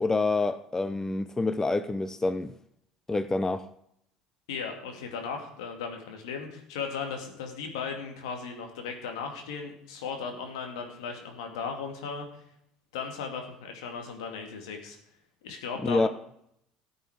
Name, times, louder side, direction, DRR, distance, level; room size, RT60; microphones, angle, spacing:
voice 1, 0.0-2.5 3.1-3.7 15.8-16.1, left 3 dB, 15° left, 0.7 m, -27 dB
voice 2, 4.5-12.4 12.9-15.0 15.4-16.1, left 5 dB, 75° left, 2.4 m, -36 dB
14.0 x 8.1 x 5.0 m
hypercardioid pair, 70°, 3 cm